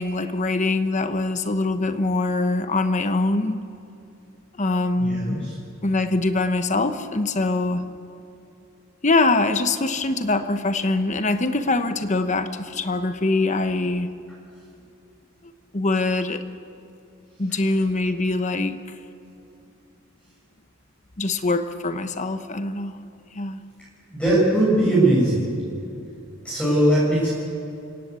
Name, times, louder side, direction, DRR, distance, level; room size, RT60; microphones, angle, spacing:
voice 1, 0.0-3.6 4.6-5.5 5.8-7.9 9.0-14.1 15.7-16.4 17.4-18.8 21.2-23.0 23.3-23.6, left 2 dB, 35° left, 9 dB, 1.2 m, -23 dB
voice 2, 5.0-5.5 24.1-25.5 26.4-27.3, right 1 dB, 5° left, -8 dB, 7.4 m, -19 dB
29.0 x 17.0 x 8.3 m, 2.7 s
head